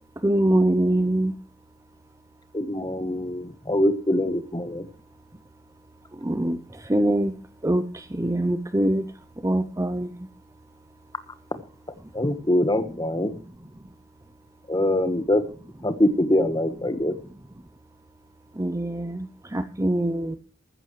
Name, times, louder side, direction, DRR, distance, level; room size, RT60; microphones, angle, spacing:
voice 1, 0.2-1.4 6.1-10.3 12.0-12.1 18.5-20.4, right 1 dB, 15° right, 10 dB, 0.6 m, -24 dB
voice 2, 2.5-4.9 11.5-11.6 12.1-13.3 14.7-15.5 15.8-17.2, left 1 dB, 20° left, 10 dB, 1.3 m, -23 dB
15.0 x 13.5 x 3.2 m, 0.36 s
head